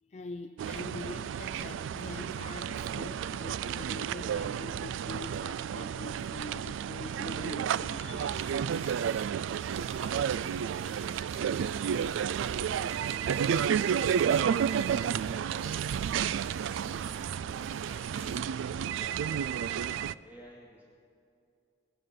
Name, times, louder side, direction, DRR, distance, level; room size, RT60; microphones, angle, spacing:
voice 1, 0.0-8.7 9.6-10.0, left 2 dB, 35° left, 5 dB, 0.5 m, -44 dB
sound 1, 0.6-20.1, right 8 dB, 85° right, 0.3 m, -31 dB
sound 2, 8.3-18.4, right 4 dB, 35° right, 0.9 m, -51 dB
voice 2, 16.7-20.8, equal, 10° right, -5 dB, 2.0 m, -54 dB
21.5 x 9.9 x 6.6 m, 2.5 s
head